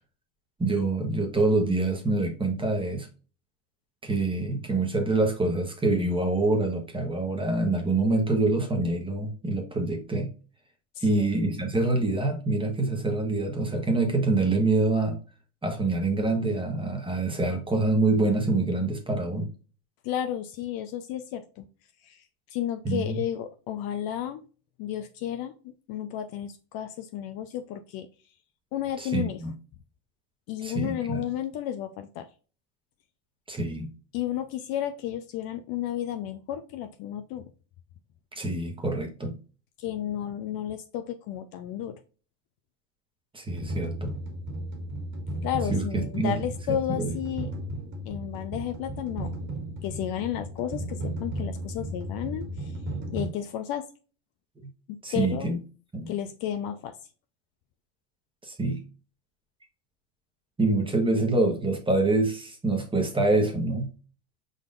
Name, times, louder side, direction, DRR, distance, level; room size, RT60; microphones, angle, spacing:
voice 1, 0.6-3.1 4.0-10.3 11.0-15.2 15.6-19.5 22.8-23.2 29.0-29.5 30.6-31.2 33.5-33.9 38.4-39.3 43.3-44.1 45.7-46.4 46.7-47.1 55.0-55.6 55.9-56.1 58.4-58.8 60.6-63.9, right 2 dB, 10° right, 3 dB, 1.2 m, -26 dB
voice 2, 20.0-21.7 22.1-22.2 22.5-24.4 24.8-25.5 25.9-28.1 28.7-29.4 30.5-32.3 34.1-37.4 39.8-41.9 45.4-47.5 48.1-49.3 49.8-52.7 53.1-53.8 54.9-55.5 56.1-57.0, left 11 dB, 45° left, 9 dB, 0.6 m, -32 dB
sound 1, 43.5-53.3, right 1 dB, 40° right, 2.0 m, -35 dB
5.0 x 4.0 x 2.5 m, 0.36 s
supercardioid pair, 120°, 48 cm